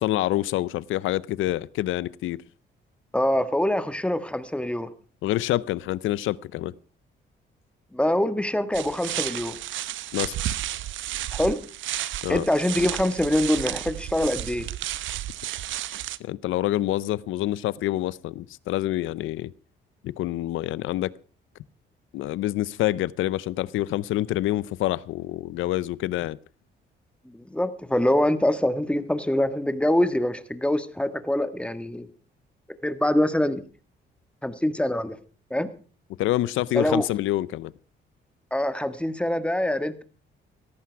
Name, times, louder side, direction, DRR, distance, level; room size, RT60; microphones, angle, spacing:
voice 1, 0.0-2.4 5.2-6.7 10.1-10.4 12.2-12.4 16.2-19.5 20.0-21.1 22.1-26.4 36.2-37.7, left 15 dB, 85° left, 0.6 m, -27 dB
voice 2, 3.1-4.9 7.9-9.6 11.3-11.6 12.3-14.7 27.5-32.1 32.8-33.6 34.4-35.2 35.5-35.7 36.7-37.0 38.5-40.0, left 1 dB, 5° left, 1.6 m, -24 dB
sound 1, 8.7-16.2, right 13 dB, 75° right, 0.8 m, -32 dB
17.5 x 14.0 x 4.6 m
cardioid pair, 90°, 20 cm